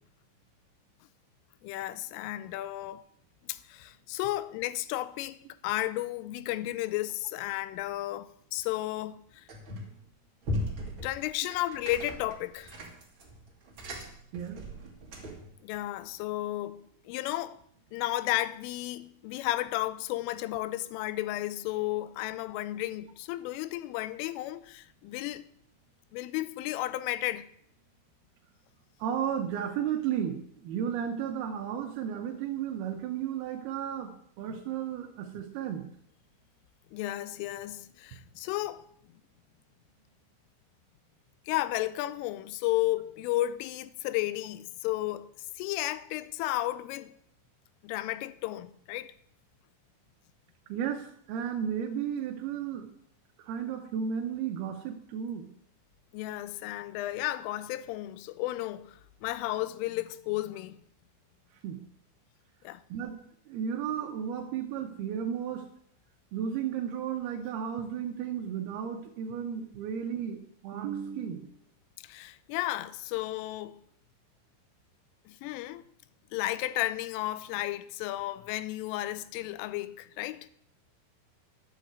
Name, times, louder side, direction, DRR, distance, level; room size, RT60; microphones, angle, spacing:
voice 1, 1.6-3.0 3.5-9.5 11.0-12.8 15.6-17.6 17.9-25.4 26.1-27.5 36.9-38.8 41.5-45.3 45.6-47.1 47.8-49.1 56.1-60.8 62.6-62.8 72.0-73.8 75.3-75.8 76.3-80.5, left 16 dB, 85° left, 3.1 m, -33 dB
sound 1, 9.5-10.0 10.4-15.5, left 1 dB, 60° right, 1.2 m, -38 dB
voice 2, 29.0-34.1 34.4-35.9 50.7-52.9 53.4-55.4 61.6-61.8 62.9-63.2 63.5-65.6 66.3-71.6, right 8 dB, 75° right, 2.3 m, -33 dB
11.0 x 7.4 x 8.1 m
omnidirectional pair, 5.8 m